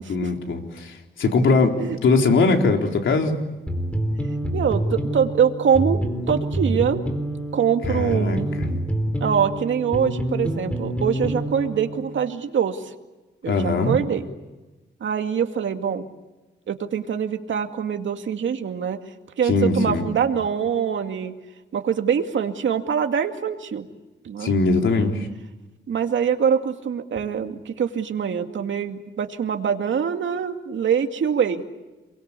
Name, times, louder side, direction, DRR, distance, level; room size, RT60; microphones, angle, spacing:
voice 1, 0.1-3.4 7.9-8.7 13.4-14.0 19.5-20.1 24.4-25.3, left 3 dB, 75° left, 3 dB, 3.9 m, -21 dB
sound 1, 3.7-12.1, right 1 dB, 5° left, 4.1 m, -27 dB
voice 2, 4.5-7.0 7.5-8.8 9.2-12.8 13.4-14.3 15.0-16.1 16.7-19.0 19.4-21.3 21.7-23.8 24.2-24.5 25.9-31.6, right 7 dB, 75° right, 5 dB, 2.4 m, -24 dB
28.5 x 23.0 x 8.4 m, 1.1 s
cardioid pair, 100°, 20 cm